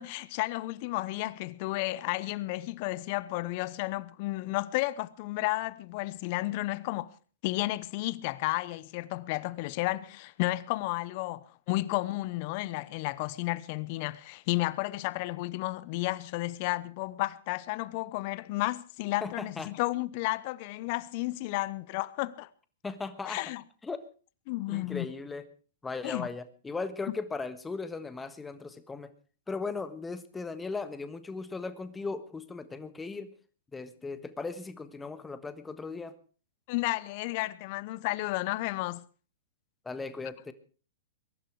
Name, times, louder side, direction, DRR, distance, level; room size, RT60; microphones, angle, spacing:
voice 1, 0.0-7.1 7.4-22.5 23.2-23.6 24.5-25.1 26.0-26.3 36.7-39.0, left 19 dB, 45° left, 0.9 m, -32 dB
voice 2, 19.2-19.7 22.8-23.4 23.8-24.0 24.7-25.4 25.8-29.1 29.5-33.3 33.7-36.2 39.8-40.5, left 4 dB, 10° left, 1.4 m, -37 dB
22.0 x 11.5 x 4.8 m
hypercardioid pair, 130°, 0 cm